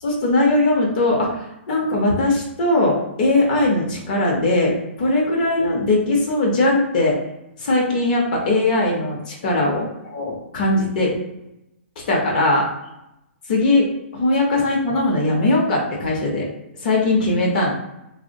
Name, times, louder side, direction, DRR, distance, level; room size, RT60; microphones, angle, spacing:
voice 1, 0.0-7.2 7.6-11.1 12.1-12.7 13.5-13.9 14.1-16.5 16.8-17.7, left 2 dB, 40° left, -2 dB, 0.7 m, -20 dB
3.1 x 2.0 x 2.6 m, 0.86 s
hypercardioid pair, 170°, 7 cm